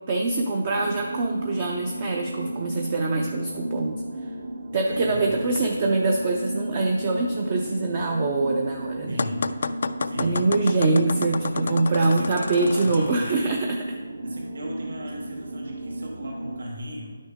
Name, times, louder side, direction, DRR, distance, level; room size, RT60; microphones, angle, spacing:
voice 1, 0.1-4.0 4.2-4.3 4.7-9.2 10.2-14.0, right 3 dB, 25° right, 1 dB, 0.5 m, -24 dB
sound 1, 0.7-16.6, right 1 dB, 50° right, 1.0 m, -34 dB
voice 2, 4.9-5.5 9.1-9.5 10.0-10.5 11.6-13.4 14.2-17.2, equal, 70° right, -2 dB, 1.9 m, -37 dB
sound 2, 9.2-13.4, left 4 dB, 50° left, 0.3 m, -31 dB
10.5 x 6.3 x 3.6 m, 1.4 s
hypercardioid pair, 175°, 0 cm